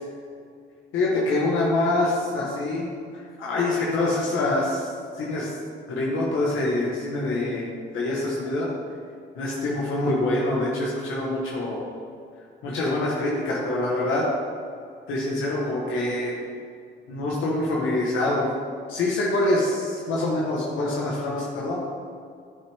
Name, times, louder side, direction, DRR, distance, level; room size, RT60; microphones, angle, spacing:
voice 1, 0.9-2.9 3.4-4.9 5.2-5.5 5.9-7.7 7.9-8.7 9.3-11.8 12.6-14.3 15.1-16.3 17.1-18.5 18.9-21.8, left 2 dB, 80° left, -4 dB, 1.5 m, -25 dB
9.6 x 6.2 x 3.6 m, 2.3 s
cardioid pair, 90°, 20 cm